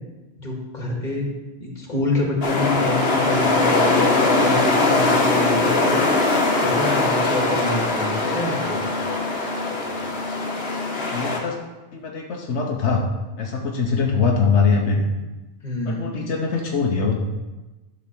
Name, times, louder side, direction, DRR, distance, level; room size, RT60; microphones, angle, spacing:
voice 1, 0.4-1.3 1.6-6.1 6.6-8.8 15.6-16.1, left 2 dB, 40° left, -1 dB, 1.9 m, -27 dB
sound 1, 2.4-11.4, left 2 dB, 60° left, 1.4 m, -21 dB
voice 2, 11.0-11.6 11.9-13.0 13.4-15.1 15.8-17.2, left 5 dB, 85° left, 0 dB, 1.2 m, -22 dB
11.5 x 3.9 x 6.0 m, 1.1 s
omnidirectional pair, 1.1 m